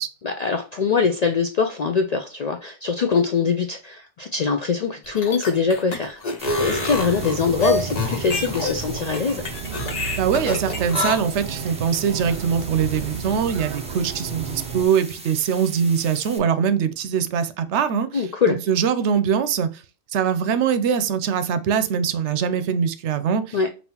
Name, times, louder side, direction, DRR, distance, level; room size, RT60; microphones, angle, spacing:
voice 1, 0.2-6.2 6.6-9.5 18.1-18.6 23.5-23.7, left 5 dB, 65° left, 0.4 m, -23 dB
sound 1, 5.0-11.1, left 2 dB, 40° left, 0.9 m, -27 dB
sound 2, 6.4-16.4, right 1 dB, 5° right, 0.6 m, -41 dB
sound 3, 6.4-14.8, right 6 dB, 60° right, 0.5 m, -32 dB
voice 2, 10.2-19.8 20.1-23.6, right 7 dB, 75° right, 0.9 m, -22 dB
5.4 x 2.8 x 2.8 m
omnidirectional pair, 1.2 m